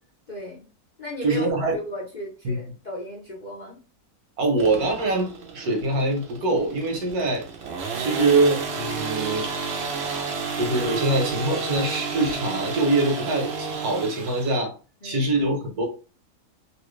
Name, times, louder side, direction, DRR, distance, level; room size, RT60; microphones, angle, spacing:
voice 1, 0.3-0.7 1.0-3.8 15.0-15.3, equal, 45° left, -4 dB, 0.6 m, -36 dB
voice 2, 1.2-1.8 2.4-2.6 4.4-7.4 8.0-9.6 10.6-14.7 15.0-15.8, right 2 dB, 75° right, 2 dB, 1.5 m, -24 dB
sound 1, 4.6-14.6, right 5 dB, 55° right, 0.8 m, -31 dB
3.0 x 2.9 x 3.1 m, 0.34 s
omnidirectional pair, 1.6 m